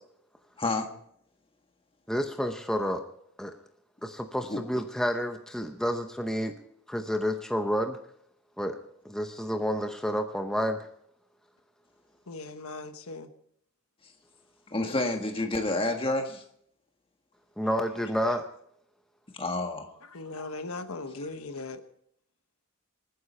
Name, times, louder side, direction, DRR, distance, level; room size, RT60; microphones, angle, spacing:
voice 1, 0.6-0.9 4.5-4.6 14.7-16.4 19.3-19.9, left 2 dB, 25° left, 4 dB, 1.6 m, -29 dB
voice 2, 2.1-3.0 3.4-3.5 4.0-6.5 6.9-8.0 8.6-8.8 9.0-10.9 17.6-18.5, equal, 5° left, 5 dB, 0.7 m, -29 dB
voice 3, 12.3-13.3 20.0-21.8, left 3 dB, 75° left, 8 dB, 1.2 m, -39 dB
27.0 x 9.7 x 4.3 m, 0.69 s
head